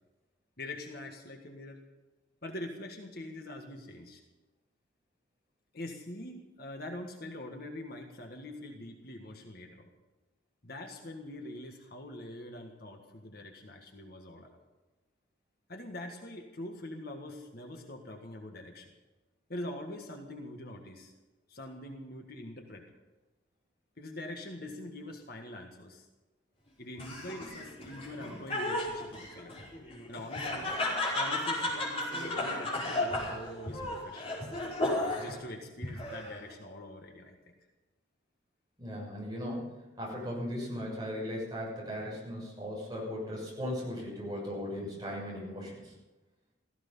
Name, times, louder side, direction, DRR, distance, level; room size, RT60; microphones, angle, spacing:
voice 1, 0.6-1.8 2.4-4.2 5.7-9.9 10.6-14.6 15.7-18.9 19.5-21.1 21.5-22.9 24.0-26.1 26.8-29.6 30.1-30.8 31.1-34.5 35.1-37.5, left 1 dB, 50° left, 3 dB, 1.7 m, -44 dB
Laughter, 27.0-35.4 35.8-36.5, left 1 dB, 30° left, 5.1 m, -34 dB
voice 2, 38.8-45.9, equal, 20° right, -4 dB, 6.5 m, -37 dB
16.5 x 15.5 x 5.5 m, 1.1 s
head